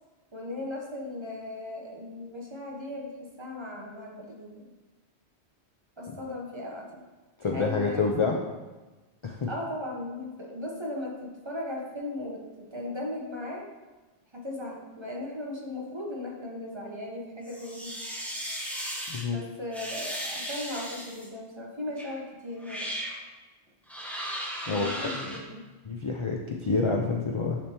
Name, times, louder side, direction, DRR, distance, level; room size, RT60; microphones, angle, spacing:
voice 1, 0.3-4.7 6.0-7.0 7.5-8.3 9.5-13.7 14.3-17.9 19.2-22.9 24.6-25.6, left 1 dB, 25° right, -2 dB, 0.9 m, -37 dB
voice 2, 7.4-8.4 9.2-9.5 19.1-19.4 24.7-24.9 25.1-25.4 25.8-27.6, left 4 dB, 45° left, 0 dB, 0.4 m, -28 dB
sound 1, 17.4-19.2 19.7-21.3 22.0-22.1 22.6-23.2 23.9-25.4, equal, ahead, 0.7 m, -36 dB
10.0 x 3.4 x 2.9 m, 1.2 s
omnidirectional pair, 1.1 m